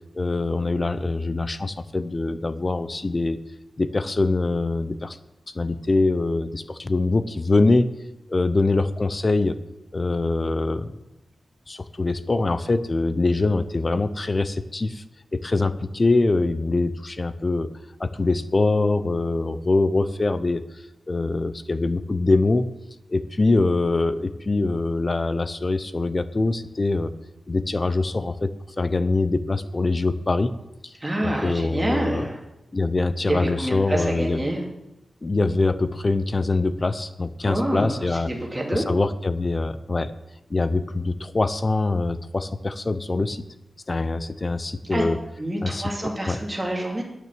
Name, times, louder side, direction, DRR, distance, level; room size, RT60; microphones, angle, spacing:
voice 1, 0.1-3.4 3.8-5.2 5.5-7.9 8.3-9.6 9.9-11.0 11.7-15.0 15.3-17.7 18.0-20.6 21.1-22.7 23.1-27.1 27.5-30.5 30.8-30.9 31.2-32.3 32.7-34.4 35.2-38.3 38.7-40.1 40.5-43.4 43.9-45.2 45.6-45.9 46.3-46.4, left 3 dB, 30° left, 13 dB, 0.6 m, -23 dB
voice 2, 31.0-32.4 33.3-34.6 37.4-38.9 44.9-45.1 45.4-47.0, right 1 dB, 15° right, -1 dB, 2.5 m, -27 dB
9.3 x 9.1 x 7.6 m, 0.93 s
wide cardioid pair, 160°, 0 cm